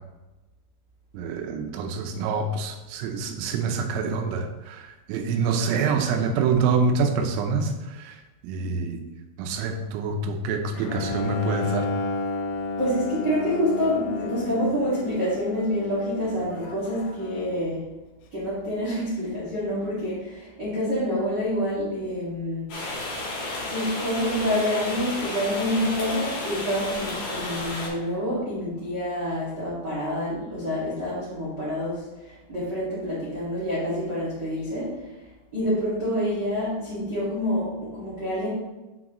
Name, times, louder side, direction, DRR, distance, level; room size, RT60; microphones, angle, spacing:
voice 1, 1.1-8.2 8.4-9.0 9.4-11.9, right 4 dB, 85° right, 5 dB, 3.4 m, -26 dB
Bowed string instrument, 10.7-17.7, left 3 dB, 85° left, 3.3 m, -32 dB
voice 2, 12.8-17.8 18.3-22.7 23.6-35.0 35.5-38.5, equal, 70° right, -8 dB, 1.0 m, -27 dB
sound 1, 22.7-27.9, left 2 dB, 50° left, 2.5 m, -32 dB
7.6 x 6.3 x 3.1 m, 1.1 s
omnidirectional pair, 5.8 m